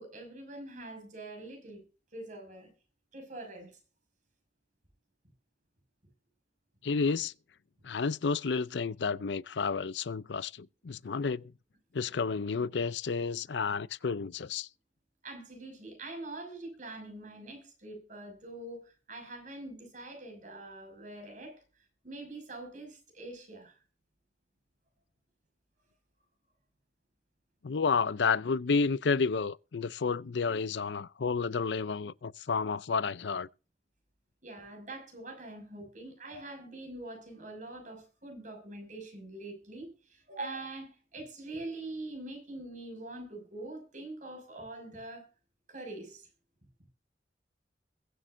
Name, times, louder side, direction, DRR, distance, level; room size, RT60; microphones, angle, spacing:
voice 1, 0.0-1.8 2.1-2.7 3.1-3.8 15.2-21.6 22.0-23.8 34.4-45.3 45.7-46.3, right 2 dB, 45° right, 6.1 m, -44 dB
voice 2, 6.8-7.3 7.8-11.5 11.9-14.7 27.6-33.5, left 5 dB, 85° left, 0.5 m, -31 dB
22.0 x 7.9 x 2.6 m
head